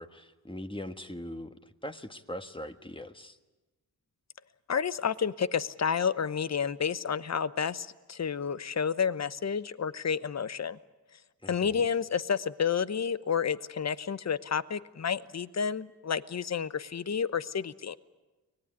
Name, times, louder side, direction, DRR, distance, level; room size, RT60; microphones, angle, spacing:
voice 1, 0.0-3.4 11.4-11.9, left 1 dB, 15° left, 8 dB, 1.5 m, -41 dB
voice 2, 4.7-10.8 11.5-18.0, left 7 dB, 45° left, 16 dB, 0.9 m, -30 dB
24.0 x 19.0 x 9.8 m, 1.2 s
cardioid pair, 45°, 37 cm